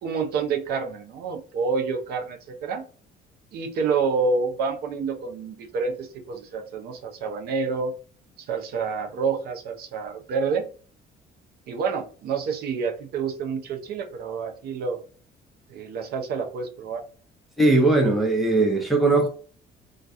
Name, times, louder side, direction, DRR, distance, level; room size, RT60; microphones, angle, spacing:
voice 1, 0.0-2.8 3.5-7.9 8.4-10.6 11.7-15.0 15.7-17.0, right 5 dB, 65° right, 0.6 m, -28 dB
voice 2, 17.6-19.3, right 2 dB, ahead, 0.7 m, -19 dB
2.3 x 2.2 x 2.6 m
cardioid pair, 110°, 17 cm